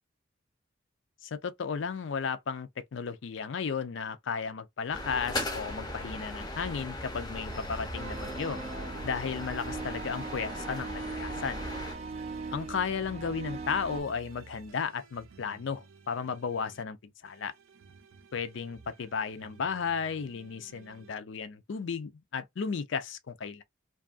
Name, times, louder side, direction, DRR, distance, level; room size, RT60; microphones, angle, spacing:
voice 1, 1.2-8.6 9.0-11.6 12.5-17.0 17.2-17.5 18.3-23.6, left 6 dB, 70° left, 0.4 m, -34 dB
sound 1, 4.9-12.0, left 1 dB, 20° left, 0.5 m, -38 dB
sound 2, 7.4-10.8 11.3-16.8 17.3-21.1, right 4 dB, 90° right, 0.5 m, -52 dB
sound 3, 7.9-14.0, right 4 dB, 30° right, 0.4 m, -40 dB
2.6 x 2.3 x 2.4 m
head